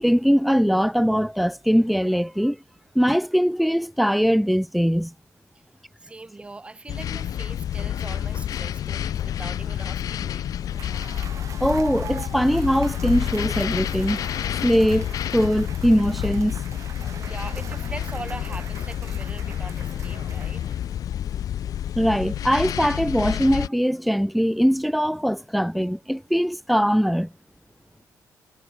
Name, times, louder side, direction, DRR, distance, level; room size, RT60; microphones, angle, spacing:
voice 1, 0.0-2.6 3.0-5.1 11.6-14.2 14.6-15.1 15.3-16.6 22.0-27.3, equal, ahead, 1.8 m, -21 dB
voice 2, 6.0-10.6 17.3-20.6, right 3 dB, 15° right, 6.1 m, -40 dB
sound 1, 6.9-23.7, left 10 dB, 70° left, 1.4 m, -29 dB
Cheering / Applause / Crowd, 10.6-21.0, right 8 dB, 55° right, 2.7 m, -42 dB
cardioid pair, 135°, 6 cm